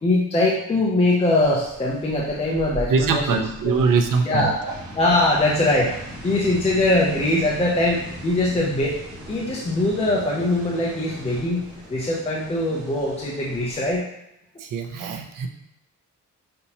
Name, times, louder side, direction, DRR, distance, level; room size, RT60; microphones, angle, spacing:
voice 1, 0.0-3.8 4.2-4.5 4.9-9.0 9.3-14.0, left 2 dB, 20° left, -4 dB, 0.5 m, -22 dB
sound 1, 1.4-14.0, right 1 dB, 5° right, 1.4 m, -39 dB
voice 2, 2.9-4.7 14.6-15.5, right 5 dB, 80° right, 4 dB, 0.6 m, -23 dB
5.3 x 2.9 x 2.8 m, 0.81 s
wide cardioid pair, 180°, 31 cm